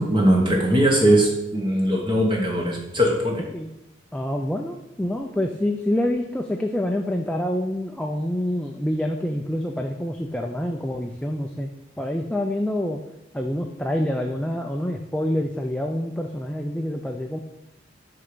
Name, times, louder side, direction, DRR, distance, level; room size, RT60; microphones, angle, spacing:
voice 1, 0.0-3.4, right 1 dB, 25° right, -1 dB, 0.9 m, -20 dB
voice 2, 4.1-11.7 12.0-13.0 13.3-17.4, left 1 dB, 5° left, 3 dB, 0.3 m, -27 dB
6.4 x 3.8 x 6.1 m, 0.89 s
head